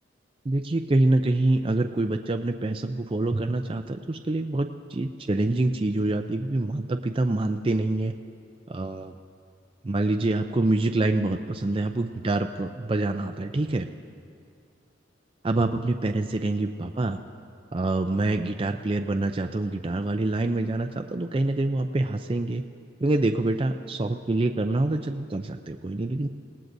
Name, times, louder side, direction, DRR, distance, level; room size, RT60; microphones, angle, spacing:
voice 1, 0.5-8.1 8.7-9.2 9.8-13.9 15.4-17.2 17.7-22.6 23.0-26.3, right 2 dB, 30° right, 5 dB, 0.4 m, -26 dB
27.0 x 18.5 x 2.6 m, 2.4 s
head